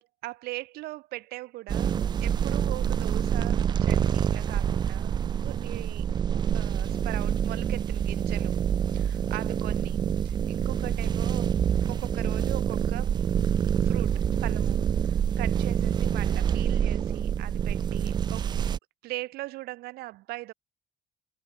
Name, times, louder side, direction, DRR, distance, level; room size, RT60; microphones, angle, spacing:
voice 1, 0.0-5.1 5.4-6.1 6.5-8.6 8.9-11.6 11.9-13.2 13.8-18.5 19.0-20.5, right 19 dB, 85° right, 1.2 m, -40 dB
sound 1, 1.7-18.8, right 8 dB, 30° right, 0.4 m, -26 dB
cardioid pair, 165°, 16 cm